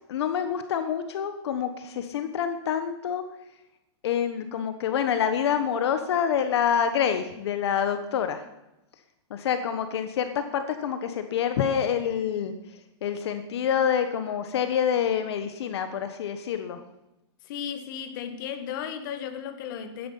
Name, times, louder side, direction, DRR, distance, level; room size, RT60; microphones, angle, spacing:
voice 1, 0.1-3.2 4.0-8.4 9.3-12.5 13.0-16.8, left 8 dB, 70° left, 1.2 m, -27 dB
voice 2, 17.5-20.1, left 8 dB, 45° left, 1.4 m, -35 dB
12.5 x 10.5 x 5.6 m
supercardioid pair, 160°, 14 cm